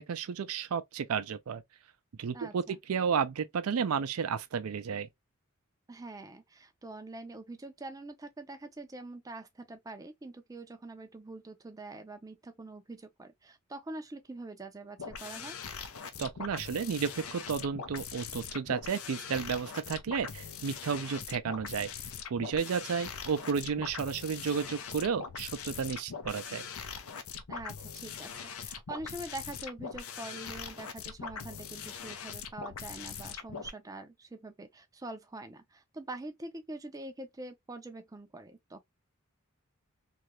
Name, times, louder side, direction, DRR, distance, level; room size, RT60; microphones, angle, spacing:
voice 1, 0.0-1.6 2.2-5.1 16.2-21.9 22.3-26.7, right 6 dB, 85° right, 0.4 m, -32 dB
voice 2, 5.9-15.6 27.5-38.8, right 2 dB, 15° right, 0.4 m, -44 dB
sound 1, 15.0-33.7, left 6 dB, 85° left, 0.6 m, -42 dB
2.7 x 2.4 x 2.9 m
head